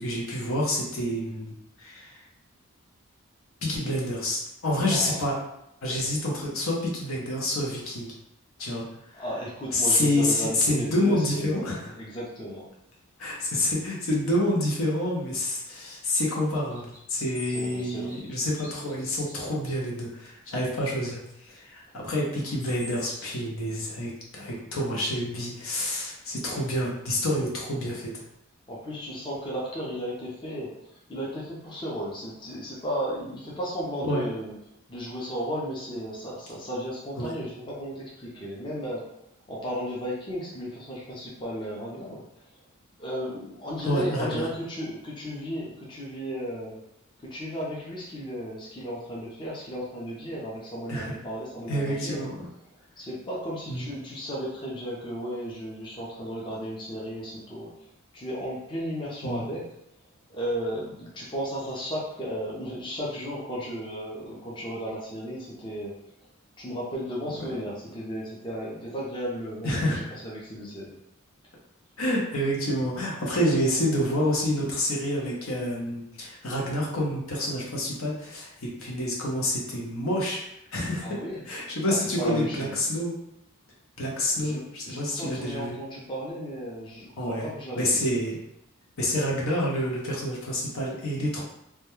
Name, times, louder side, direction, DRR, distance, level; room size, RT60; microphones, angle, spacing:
voice 1, 0.0-2.2 3.6-5.4 5.8-8.1 8.6-8.9 9.1-9.2 9.7-11.9 13.2-28.1 34.0-34.3 37.2-37.3 43.8-44.5 50.9-51.2 51.7-52.4 53.7-53.9 59.2-59.5 67.4-67.5 69.6-70.1 72.0-80.4 80.7-81.2 81.5-83.1 84.0-85.8 87.2-87.5 87.8-88.4 89.0-91.4, left 1 dB, 75° left, -3 dB, 0.7 m, -28 dB
voice 2, 4.9-5.3 5.9-6.0 9.1-12.6 17.5-18.2 27.8-28.0 28.7-34.5 34.9-39.0 39.5-42.2 43.0-46.8 47.2-52.2 53.0-57.7 58.1-59.6 60.3-65.9 66.6-71.0 81.0-81.4 81.9-82.8 84.3-88.0, equal, 25° left, -5 dB, 0.5 m, -34 dB
sound 1, 16.5-19.4 22.4-23.4, left 1 dB, 45° left, 0.9 m, -45 dB
2.2 x 2.1 x 3.0 m, 0.81 s
head